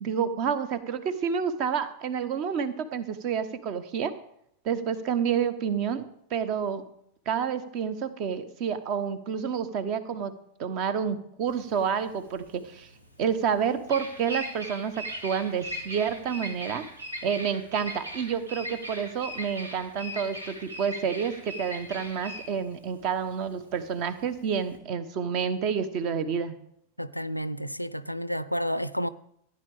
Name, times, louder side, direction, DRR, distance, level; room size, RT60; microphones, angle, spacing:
voice 1, 0.0-4.1 4.6-6.8 7.3-10.3 10.6-12.9 13.2-16.8 17.2-26.6, right 7 dB, 40° right, 1.1 m, -29 dB
Bird vocalization bird call bird song, 11.5-24.8, equal, 80° right, 2.1 m, -39 dB
voice 2, 27.0-29.1, equal, 90° left, 0.4 m, -30 dB
15.0 x 9.9 x 3.6 m
figure-of-eight pair, 90°, 0 cm